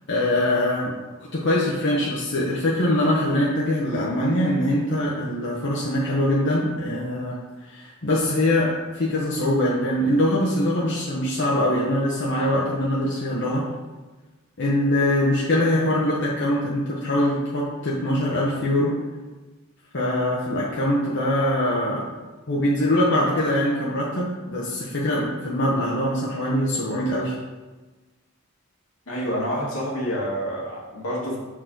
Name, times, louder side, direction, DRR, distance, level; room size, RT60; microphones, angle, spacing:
voice 1, 0.1-0.9 1.3-7.4 7.7-13.6 14.6-18.9 19.9-22.0 22.5-27.4, left 1 dB, 55° left, -5 dB, 0.9 m, -23 dB
voice 2, 29.1-31.4, equal, 80° left, -5 dB, 2.0 m, -28 dB
6.0 x 4.6 x 3.8 m, 1.2 s
head